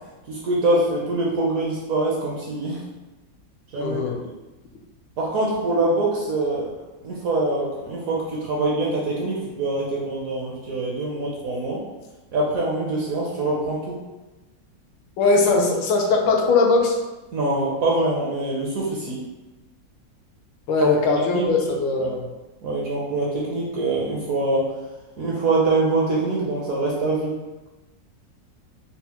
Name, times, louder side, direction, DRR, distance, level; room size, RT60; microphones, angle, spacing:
voice 1, 0.3-2.8 3.7-4.0 5.2-6.7 7.0-11.8 12.3-13.9 17.3-19.2 20.8-20.9 21.3-21.5 22.0-22.1 22.6-24.7 25.2-27.3, right 2 dB, 65° right, -4 dB, 0.9 m, -24 dB
voice 2, 3.8-4.1 15.2-17.0 20.7-22.2, left 3 dB, 85° left, 1 dB, 1.3 m, -20 dB
4.2 x 2.0 x 2.8 m, 1.1 s
omnidirectional pair, 2.0 m